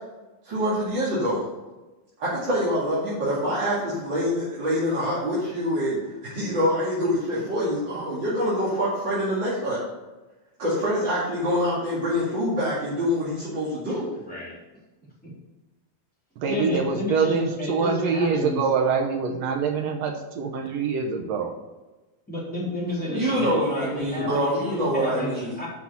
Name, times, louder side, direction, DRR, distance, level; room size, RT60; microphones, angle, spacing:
voice 1, 0.4-1.4 2.2-9.8 10.6-14.1 23.0-25.5, equal, 35° right, -9 dB, 2.6 m, -25 dB
voice 2, 14.3-14.6 16.5-18.6 22.3-25.7, left 2 dB, ahead, -7 dB, 3.4 m, -31 dB
voice 3, 16.4-21.5, right 5 dB, 75° right, 3 dB, 1.5 m, -25 dB
8.5 x 6.0 x 7.0 m, 1.1 s
omnidirectional pair, 4.2 m